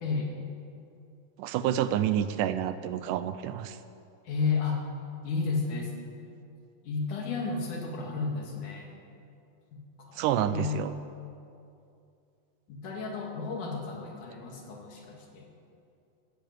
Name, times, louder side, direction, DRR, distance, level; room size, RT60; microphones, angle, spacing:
voice 1, 0.0-0.3 4.3-4.8 5.2-5.9 6.9-8.9 9.7-11.0 12.7-15.5, left 4 dB, 70° left, 0 dB, 3.6 m, -32 dB
voice 2, 1.4-3.8 10.2-10.9, right 10 dB, 80° right, 12 dB, 2.1 m, -28 dB
12.5 x 12.0 x 9.3 m, 2.5 s
omnidirectional pair, 3.8 m